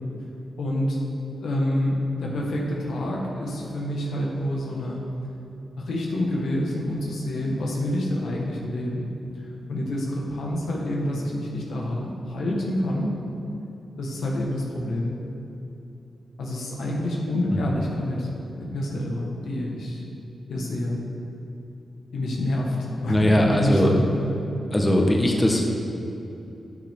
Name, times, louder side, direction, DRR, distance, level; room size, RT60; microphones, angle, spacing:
voice 1, 0.6-1.0 1.4-5.0 5.8-9.1 9.4-13.2 14.0-15.2 16.4-18.3 18.6-20.0 20.5-21.0 22.1-24.3, left 1 dB, 85° left, -3 dB, 1.6 m, -27 dB
voice 2, 23.1-23.9 24.7-25.7, equal, 20° left, 0 dB, 1.4 m, -20 dB
11.5 x 6.6 x 3.7 m, 2.9 s
cardioid pair, 55°, 0 cm